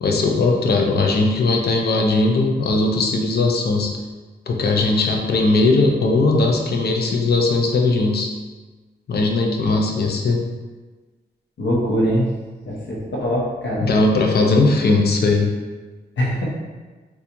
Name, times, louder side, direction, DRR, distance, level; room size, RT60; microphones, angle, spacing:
voice 1, 0.0-3.9 4.5-8.3 9.1-10.4 13.8-15.5, left 3 dB, 60° left, 1 dB, 0.5 m, -18 dB
voice 2, 11.6-12.2 12.7-13.9 16.2-16.5, equal, 90° left, -4 dB, 0.9 m, -22 dB
4.2 x 2.4 x 2.6 m, 1.3 s
wide cardioid pair, 95°, 18 cm